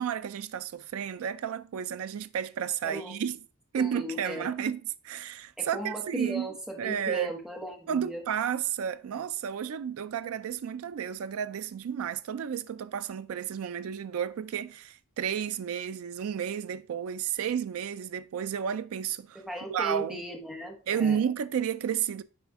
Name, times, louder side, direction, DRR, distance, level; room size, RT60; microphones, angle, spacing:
voice 1, 0.0-3.4 3.7-6.5 6.8-7.3 7.9-19.4 19.7-20.2 20.9-22.2, right 8 dB, 70° right, 0.3 m, -32 dB
voice 2, 2.8-3.2 3.8-4.5 5.6-8.2 19.3-21.2, right 1 dB, 5° right, 1.3 m, -37 dB
9.7 x 3.5 x 3.5 m
head